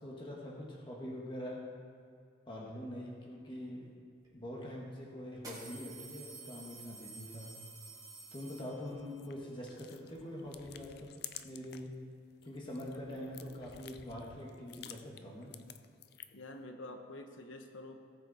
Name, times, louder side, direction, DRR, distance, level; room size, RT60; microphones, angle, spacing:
voice 1, 0.0-1.7 2.5-3.9 4.3-7.5 8.3-12.0 12.4-15.5, left 1 dB, 25° left, -3 dB, 1.4 m, -44 dB
sound 1, 4.2-4.3 5.3-9.1, right 3 dB, 20° right, 2.4 m, -50 dB
sound 2, 8.9-11.9 12.3-16.5, left 10 dB, 50° left, 0.4 m, -52 dB
voice 2, 16.3-17.9, left 2 dB, 75° left, 5 dB, 1.0 m, -47 dB
17.5 x 6.4 x 4.1 m, 2.4 s
head